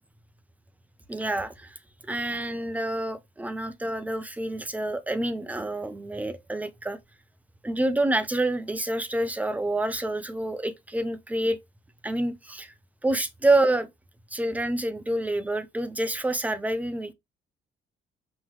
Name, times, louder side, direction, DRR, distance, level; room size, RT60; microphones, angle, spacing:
voice 1, 1.1-1.8 2.1-7.0 7.6-11.6 12.0-12.7 13.0-13.9 14.3-17.1, right 1 dB, 10° right, 0.7 m, -27 dB
5.5 x 3.0 x 3.0 m
cardioid pair, 110°, 17 cm